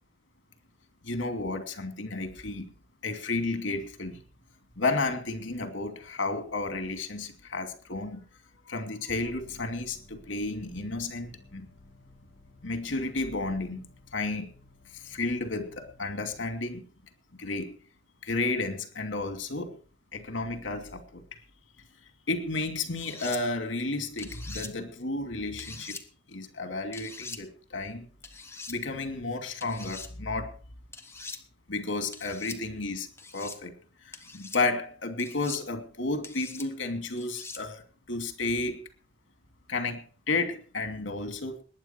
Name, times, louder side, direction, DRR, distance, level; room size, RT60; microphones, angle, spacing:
voice 1, 1.0-2.7 3.0-4.2 4.8-8.2 8.7-11.7 12.6-13.8 14.1-14.4 14.9-16.8 17.3-17.8 18.2-19.8 20.1-21.2 22.3-26.0 26.3-28.1 28.7-30.6 31.7-33.1 33.3-33.7 34.0-37.8 38.1-38.8 39.7-41.6, left 3 dB, 80° left, 7 dB, 2.7 m, -32 dB
sound 1, 9.1-16.5, left 2 dB, 45° left, 7.6 m, -55 dB
sound 2, 23.0-23.4 24.2-24.7 25.6-26.0 26.9-27.4 28.2-28.8 29.6-30.1 30.9-31.4 32.1-32.6 33.2-33.6 34.1-34.6 35.2-35.6 36.2-36.7 37.2-37.6, left 4 dB, 15° left, 1.5 m, -42 dB
20.5 x 9.8 x 4.6 m, 0.40 s
head